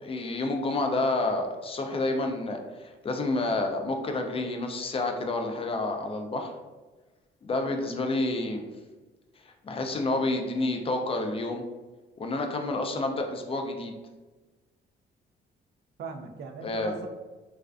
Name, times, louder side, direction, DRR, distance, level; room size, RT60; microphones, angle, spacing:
voice 1, 0.0-6.5 7.4-8.6 9.4-11.6 12.2-13.9 16.6-16.9, left 2 dB, 30° left, 4 dB, 0.4 m, -29 dB
voice 2, 9.9-10.3 16.0-17.1, right 4 dB, 60° right, 5 dB, 0.4 m, -40 dB
2.4 x 2.1 x 2.3 m, 1.2 s
cardioid pair, 90°, 20 cm